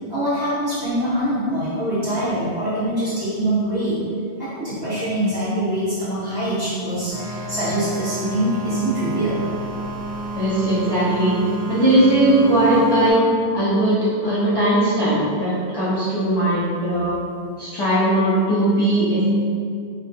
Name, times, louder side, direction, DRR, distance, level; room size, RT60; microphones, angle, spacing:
voice 1, 0.1-4.0 4.4-9.4, right 1 dB, 25° right, -13 dB, 0.9 m, -24 dB
sound 1, 7.1-13.1, right 2 dB, 80° left, 0.9 m, -30 dB
voice 2, 10.3-11.4 11.7-13.2 13.5-17.2 17.6-19.2, right 1 dB, 35° left, -12 dB, 0.4 m, -19 dB
2.3 x 2.1 x 2.7 m, 2.3 s
omnidirectional pair, 1.1 m